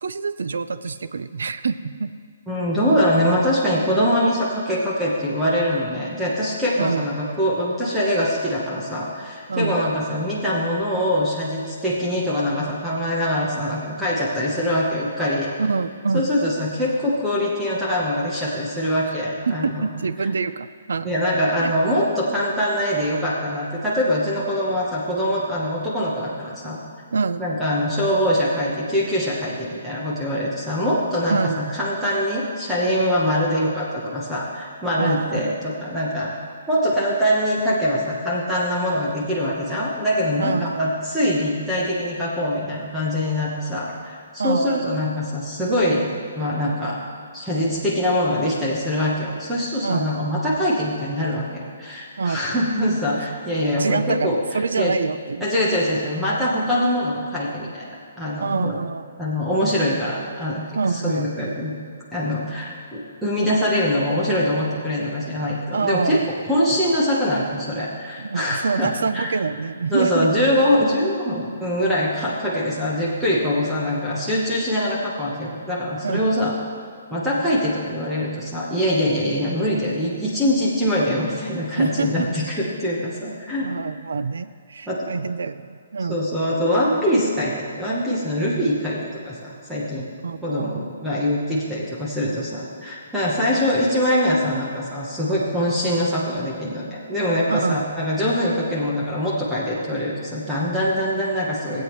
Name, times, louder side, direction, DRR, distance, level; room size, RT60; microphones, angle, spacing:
voice 1, 0.0-2.1 6.8-7.1 9.5-9.8 15.6-16.3 19.1-21.1 21.6-21.7 27.1-27.4 31.3-31.6 35.0-35.5 40.4-40.8 44.4-45.0 49.8-50.4 52.2-52.4 53.8-55.5 58.4-59.0 60.7-61.3 65.7-66.3 68.2-70.3 76.0-76.3 81.8-82.3 83.6-86.2 90.2-90.8 97.5-97.8, right 4 dB, 85° right, 13 dB, 0.5 m, -26 dB
voice 2, 2.5-15.5 16.1-19.9 21.0-26.8 27.4-36.3 36.7-46.1 46.4-47.0 47.3-54.4 54.8-54.9 55.4-58.8 59.2-61.7 62.1-66.2 66.5-69.3 69.9-76.5 77.1-83.7 84.9-85.1 86.1-89.0 89.3-90.0 90.4-101.8, equal, ahead, -8 dB, 0.9 m, -23 dB
17.5 x 8.3 x 3.1 m, 2.3 s
hypercardioid pair, 180°, 0 cm